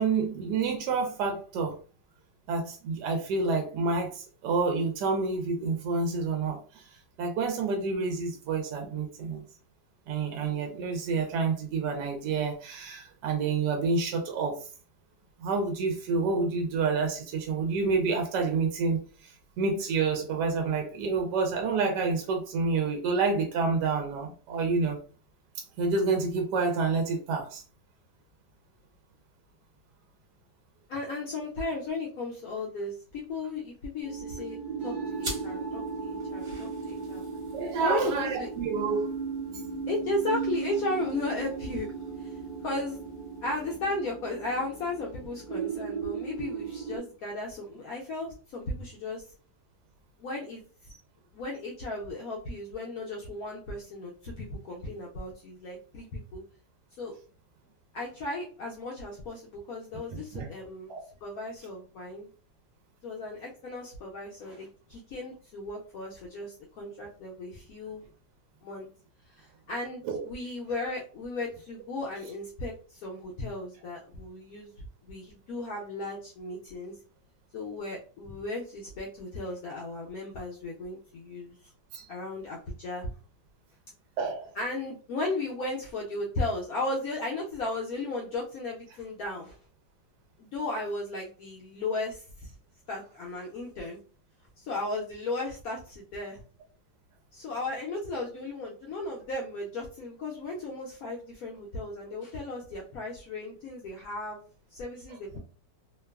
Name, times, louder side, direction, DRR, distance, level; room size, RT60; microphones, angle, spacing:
voice 1, 0.0-1.8 2.5-6.8 7.2-9.4 10.1-14.6 15.4-25.0 25.8-27.6 37.5-39.1 60.1-60.5 60.9-61.0 70.0-70.3 81.9-82.1 84.2-84.5, right 4 dB, 75° right, 3 dB, 1.1 m, -28 dB
voice 2, 30.9-34.6 34.8-37.3 37.8-38.5 39.9-41.9 42.2-42.3 42.6-43.0 43.4-49.3 50.2-50.6 50.9-51.0 51.3-56.4 57.0-57.1 57.9-60.9 61.2-62.3 63.0-68.0 68.6-68.9 69.4-74.7 75.0-76.9 77.5-81.5 82.1-83.1 84.6-89.6 90.4-92.5 92.9-94.0 94.6-96.4 97.3-104.4 104.7-105.4, left 2 dB, 70° left, -3 dB, 0.8 m, -35 dB
sound 1, 34.0-47.0, right 5 dB, 60° right, 0.5 m, -36 dB
sound 2, 35.2-44.1, equal, 40° right, 1.1 m, -47 dB
2.9 x 2.2 x 2.2 m, 0.38 s
omnidirectional pair, 2.0 m